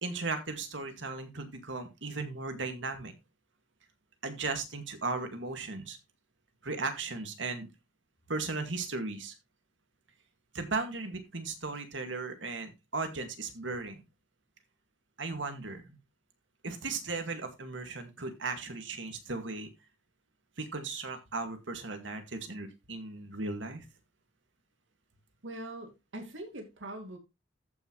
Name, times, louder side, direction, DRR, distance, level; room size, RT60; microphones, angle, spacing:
voice 1, 0.0-3.1 4.2-6.0 6.6-7.7 8.3-9.3 10.5-14.0 15.2-16.0 16.6-19.7 20.6-23.9, right 3 dB, 70° right, 6 dB, 2.1 m, -36 dB
voice 2, 25.4-27.2, right 1 dB, 90° right, 5 dB, 2.5 m, -42 dB
14.0 x 6.1 x 3.2 m, 0.23 s
head